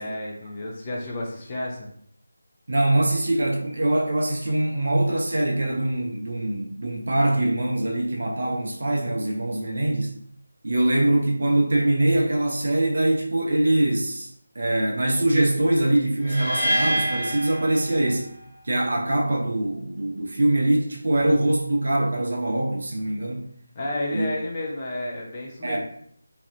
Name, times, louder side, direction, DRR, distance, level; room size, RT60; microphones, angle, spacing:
voice 1, 0.0-1.9 23.7-25.8, left 1 dB, 20° left, -3 dB, 0.4 m, -31 dB
voice 2, 2.7-10.1 10.6-14.3 14.6-18.3 18.6-23.4 24.1-24.3 25.6-25.8, right 1 dB, 50° right, 0 dB, 0.5 m, -23 dB
sound 1, 16.2-18.4, equal, 25° right, 0.9 m, -26 dB
2.4 x 2.0 x 2.5 m, 0.66 s
figure-of-eight pair, 160°, 0 cm